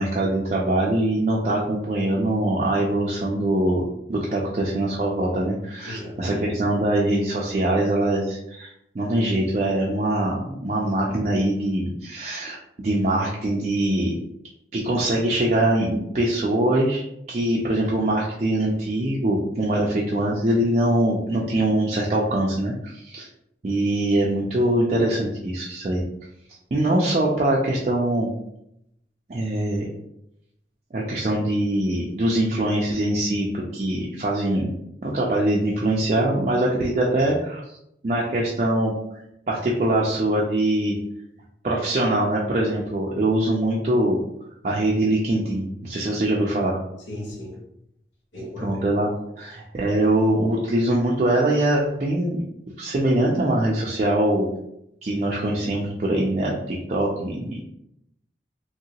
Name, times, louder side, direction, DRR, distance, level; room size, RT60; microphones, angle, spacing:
voice 1, 0.0-14.1 14.7-23.3 23.6-26.1 26.7-28.3 29.3-29.9 30.9-34.7 35.0-37.8 38.0-38.9 39.5-41.0 41.6-44.2 44.6-46.8 48.6-49.1 49.4-52.4 52.8-54.5 55.0-57.6, right 1 dB, 40° right, -4 dB, 0.4 m, -23 dB
voice 2, 5.9-6.5 47.1-47.6 48.3-48.8, left 1 dB, 85° left, -3 dB, 0.8 m, -35 dB
2.9 x 2.8 x 2.8 m, 0.79 s
head